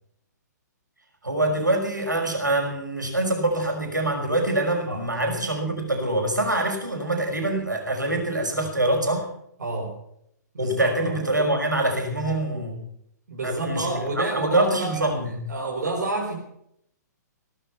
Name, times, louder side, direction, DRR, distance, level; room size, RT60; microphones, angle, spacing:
voice 1, 1.2-9.3 10.6-12.8 13.4-15.4, right 1 dB, 90° right, 2 dB, 5.6 m, -25 dB
voice 2, 9.6-10.0 10.5-11.2 13.3-15.1 15.5-16.4, right 2 dB, 70° right, -1 dB, 4.5 m, -29 dB
18.0 x 12.5 x 5.7 m, 0.72 s
figure-of-eight pair, 120°, 10 cm